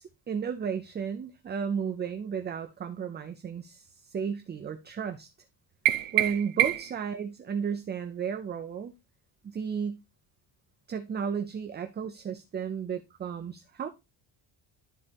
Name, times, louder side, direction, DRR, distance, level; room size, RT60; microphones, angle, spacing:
voice 1, 0.0-5.3 6.1-8.9 9.4-10.0 10.9-13.9, right 7 dB, 25° right, 0.4 m, -33 dB
sound 1, 5.9-7.1, right 14 dB, 80° right, 1.0 m, -26 dB
12.0 x 4.2 x 3.4 m
cardioid pair, 175°, 48 cm